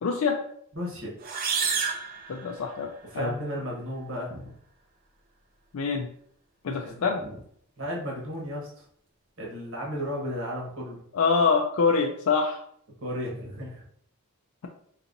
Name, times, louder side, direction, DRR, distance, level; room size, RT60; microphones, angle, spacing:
voice 1, 0.0-0.4 2.3-2.9 3.1-3.3 5.7-6.1 6.6-7.2 11.1-12.6, left 5 dB, 75° left, 2 dB, 0.4 m, -25 dB
voice 2, 0.7-1.1 3.1-4.5 6.8-7.4 7.8-8.8 9.4-11.0 13.0-13.8, equal, 60° right, -3 dB, 1.2 m, -34 dB
sound 1, 1.2-3.0, right 6 dB, 40° right, 0.4 m, -30 dB
4.6 x 2.9 x 2.6 m, 0.64 s
head